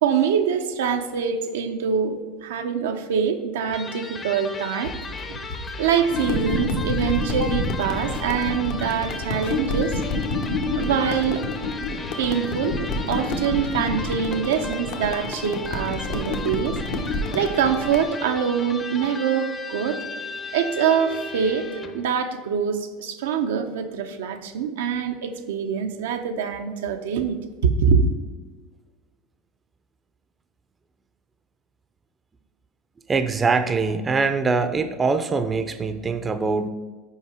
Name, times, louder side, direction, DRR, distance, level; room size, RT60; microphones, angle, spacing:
voice 1, 0.0-4.9 5.3-5.5 5.8-10.0 10.7-11.4 12.2-16.7 17.1-20.0 20.5-21.7 21.9-28.1, right 7 dB, 85° right, 6 dB, 0.6 m, -24 dB
Electric guitar, 3.7-22.1, left 3 dB, 25° left, 0.7 m, -36 dB
sound 1, 4.8-10.1, left 2 dB, 90° left, 0.8 m, -39 dB
sound 2, 6.1-18.0, left 2 dB, 70° left, 1.1 m, -28 dB
voice 2, 33.1-36.7, right 4 dB, 20° right, 9 dB, 0.5 m, -23 dB
5.5 x 4.9 x 4.8 m, 1.3 s
supercardioid pair, 110°, 0 cm